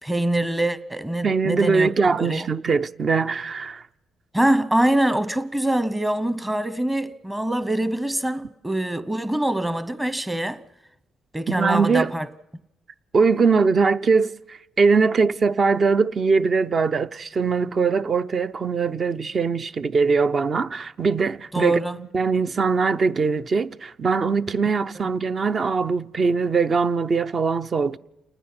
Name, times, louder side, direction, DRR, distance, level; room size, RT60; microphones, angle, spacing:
voice 1, 0.0-1.9 2.2-2.5 4.3-10.6 11.3-12.3 21.5-21.9, right 1 dB, 10° right, 1.0 m, -24 dB
voice 2, 1.2-3.8 11.5-12.1 13.1-28.0, right 4 dB, 40° right, 0.7 m, -21 dB
28.5 x 10.0 x 9.7 m
cardioid pair, 90°, 0 cm